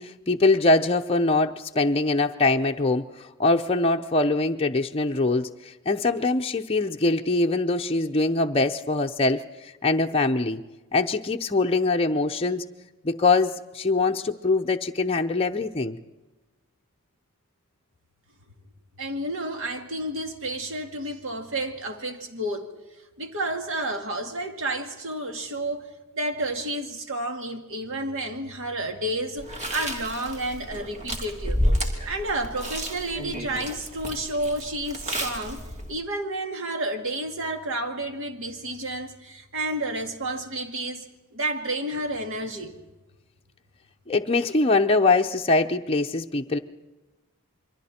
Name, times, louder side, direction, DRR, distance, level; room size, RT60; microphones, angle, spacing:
voice 1, 0.0-3.1 3.4-9.4 9.8-10.6 10.9-12.6 13.0-16.0 44.1-46.6, left 3 dB, 25° left, 2 dB, 0.7 m, -23 dB
voice 2, 19.0-22.7 23.2-25.9 26.1-31.6 32.0-35.6 35.9-41.0 41.3-42.7, right 1 dB, 60° right, 5 dB, 2.3 m, -30 dB
Chewing mastication, 29.4-35.9, equal, 30° right, 2.8 m, -30 dB
28.0 x 23.0 x 4.4 m, 1.1 s
head